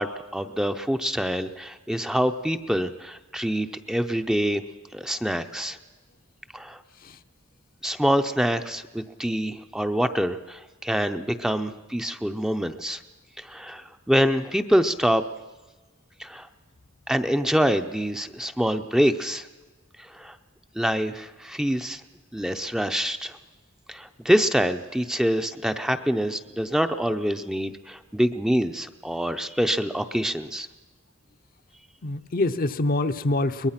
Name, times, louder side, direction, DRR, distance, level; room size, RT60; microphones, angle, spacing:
voice 1, 0.0-4.6 4.9-5.8 6.5-6.8 7.8-13.0 13.4-15.2 16.2-16.5 17.1-19.5 20.0-20.4 20.7-22.0 22.3-23.4 23.9-30.7, equal, 5° right, 8 dB, 0.6 m, -25 dB
voice 2, 32.0-33.7, left 2 dB, 45° left, 9 dB, 0.7 m, -25 dB
22.5 x 20.0 x 5.8 m, 1.2 s
head